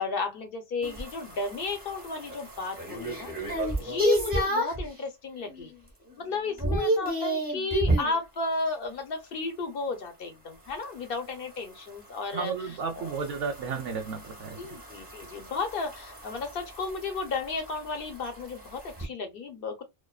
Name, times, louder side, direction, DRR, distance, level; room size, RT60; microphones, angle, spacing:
voice 1, 0.0-3.3 3.7-5.7 6.2-13.1 14.6-19.8, left 4 dB, 55° left, 0.8 m, -33 dB
sound 1, 0.8-4.9 5.4-5.8 6.1-8.2 10.7-19.1, right 1 dB, 10° right, 0.7 m, -32 dB
voice 2, 12.3-14.6, right 5 dB, 65° right, 0.7 m, -33 dB
2.5 x 2.2 x 2.2 m
omnidirectional pair, 1.2 m